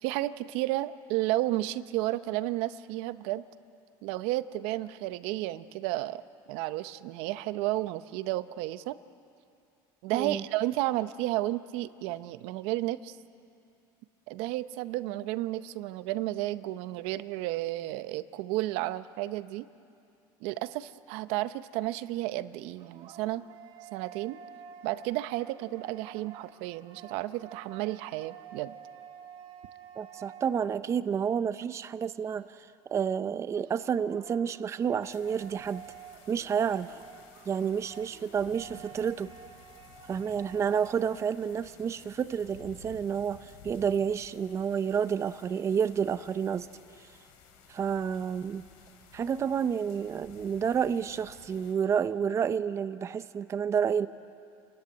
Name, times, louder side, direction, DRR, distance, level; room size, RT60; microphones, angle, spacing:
voice 1, 0.0-3.4 4.0-6.2 6.5-9.0 10.0-13.2 14.3-19.7 20.4-23.4 23.9-24.4 24.8-28.8, right 16 dB, 75° right, 13 dB, 0.7 m, -32 dB
voice 2, 10.1-10.4 30.0-32.6 32.9-35.8 36.3-37.0 37.5-39.3 40.1-46.7 47.7-48.6 49.1-54.1, right 7 dB, 30° right, 13 dB, 0.6 m, -30 dB
sound 1, 22.5-31.2 33.5-41.3, right 8 dB, 50° right, 1.3 m, -50 dB
sound 2, 35.0-51.8, left 5 dB, 80° left, 3.3 m, -55 dB
28.0 x 14.0 x 9.6 m, 2.5 s
cardioid pair, 125°, 10 cm